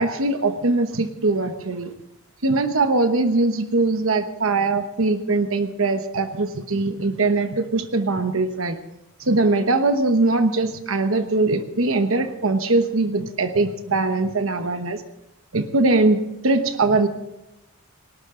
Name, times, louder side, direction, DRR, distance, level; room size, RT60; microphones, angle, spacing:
voice 1, 0.0-1.9 2.4-8.8 9.2-15.0 15.5-17.1, right 3 dB, 65° right, 8 dB, 1.1 m, -21 dB
19.5 x 18.5 x 3.8 m, 0.90 s
head